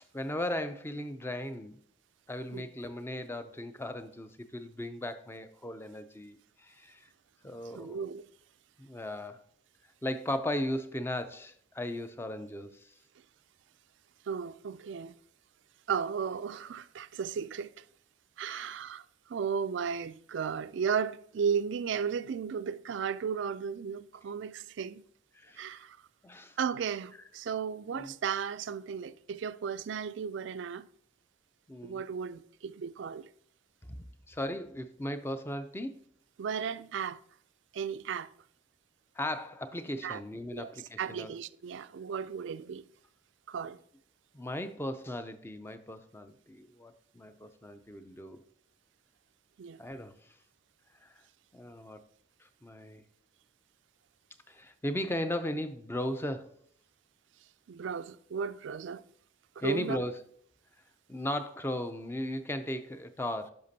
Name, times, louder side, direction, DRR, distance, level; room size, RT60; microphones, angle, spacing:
voice 1, 0.1-1.8 2.3-7.1 7.4-8.0 8.8-9.4 10.0-12.9 18.4-18.7 25.3-25.7 26.2-26.6 27.9-28.1 31.7-32.0 34.3-36.0 39.2-41.3 44.3-48.4 49.8-50.3 51.0-51.2 51.5-52.0 52.4-53.0 54.5-56.5 59.6-60.2 61.1-63.5, left 1 dB, 10° left, 0.4 m, -37 dB
voice 2, 7.7-8.2 14.3-15.1 15.9-17.8 18.4-25.0 25.6-26.0 26.6-30.9 31.8-33.3 36.4-37.2 37.7-38.3 40.0-40.2 40.5-40.7 41.0-42.8 43.5-43.8 49.6-49.8 57.7-59.0 59.6-60.0, right 6 dB, 60° right, 0.3 m, -35 dB
10.0 x 5.8 x 2.8 m
head